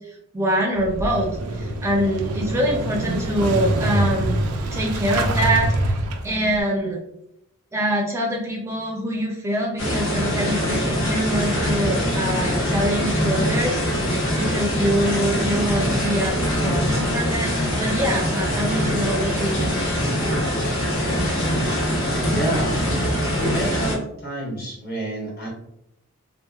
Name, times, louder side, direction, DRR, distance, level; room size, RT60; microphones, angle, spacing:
voice 1, 0.3-4.4 4.7-5.7 6.2-7.0 7.7-13.8 14.4-19.8, equal, 10° right, -2 dB, 0.5 m, -24 dB
Motorcycle / Engine starting, 0.7-6.6, right 1 dB, 85° right, 0.4 m, -25 dB
sound 1, 9.8-24.0, equal, 70° left, 0.7 m, -23 dB
voice 2, 22.2-22.8 23.5-25.5, right 1 dB, 40° left, -4 dB, 0.9 m, -29 dB
2.8 x 2.1 x 2.3 m, 0.81 s
head